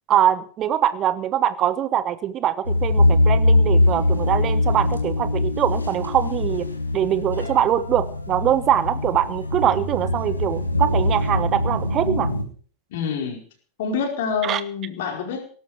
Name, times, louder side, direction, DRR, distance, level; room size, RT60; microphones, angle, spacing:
voice 1, 0.1-6.7 6.9-12.3 14.4-14.6, right 10 dB, 30° right, 14 dB, 1.2 m, -23 dB
sound 1, 2.7-12.4, left 2 dB, 85° left, 2.4 m, -22 dB
voice 2, 12.9-13.4 13.8-15.4, left 6 dB, 55° left, 3 dB, 4.8 m, -26 dB
18.0 x 13.0 x 4.8 m, 0.44 s
figure-of-eight pair, 90°, 0 cm